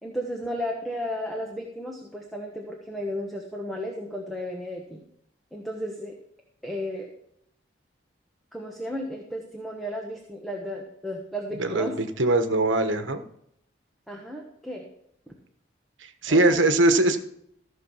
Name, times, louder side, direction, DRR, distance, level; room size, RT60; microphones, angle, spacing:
voice 1, 0.0-5.0 5.5-6.1 6.6-7.1 8.5-12.0 14.1-14.8 15.3-15.4 16.3-16.7, equal, ahead, 0 dB, 1.2 m, -34 dB
voice 2, 11.6-13.2 16.0-17.2, right 2 dB, 85° right, 8 dB, 1.2 m, -21 dB
15.0 x 6.4 x 5.6 m, 0.72 s
head